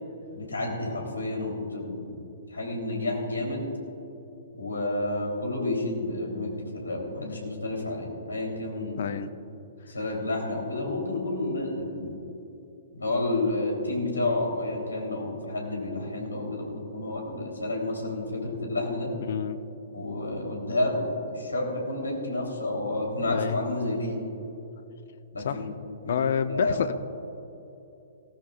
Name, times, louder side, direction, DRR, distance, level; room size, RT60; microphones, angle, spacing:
voice 1, 0.3-2.2 2.5-3.7 4.6-9.1 9.9-12.2 12.9-19.1 19.9-24.1 25.3-25.7 26.0-26.1 26.5-26.9, left 2 dB, 85° left, -1 dB, 3.4 m, -30 dB
voice 2, 9.0-9.3 12.1-12.2 19.3-19.6 23.3-23.6 25.4-25.6 26.1-26.9, left 8 dB, 55° left, 11 dB, 0.7 m, -28 dB
18.0 x 16.5 x 2.5 m, 3.0 s
figure-of-eight pair, 120°, 0 cm